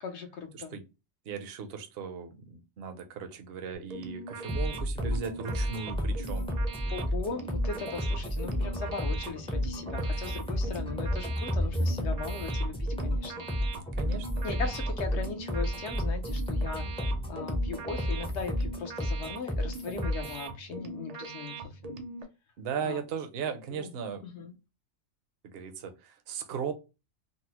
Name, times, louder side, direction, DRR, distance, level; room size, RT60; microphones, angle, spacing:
voice 1, 0.0-0.7 6.9-13.5 14.4-16.9 17.3-21.9 22.8-23.0 23.7-23.9 24.2-24.5, left 5 dB, 65° left, 0.9 m, -39 dB
voice 2, 1.2-6.5 13.9-14.7 22.6-24.2 25.4-26.7, right 6 dB, 60° right, 0.8 m, -37 dB
sound 1, 3.7-22.2, right 3 dB, 85° right, 0.3 m, -42 dB
sound 2, 4.5-20.5, equal, 10° left, 0.4 m, -31 dB
3.9 x 2.0 x 2.8 m
omnidirectional pair, 1.3 m